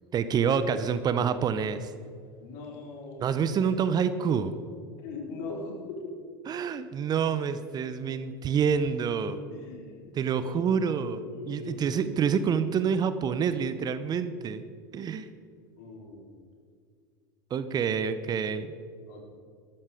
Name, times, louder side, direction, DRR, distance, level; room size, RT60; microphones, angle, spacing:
voice 1, 0.1-1.9 3.2-4.5 6.5-9.4 10.1-14.6 14.9-15.3 17.5-18.7, right 7 dB, 35° right, 12 dB, 0.8 m, -27 dB
voice 2, 2.4-3.6 4.2-4.4 5.0-6.0 9.5-12.6 15.8-16.4 19.1-19.2, left 3 dB, 55° left, 0 dB, 4.2 m, -41 dB
13.5 x 13.0 x 5.1 m, 2.2 s
hypercardioid pair, 85°, 12 cm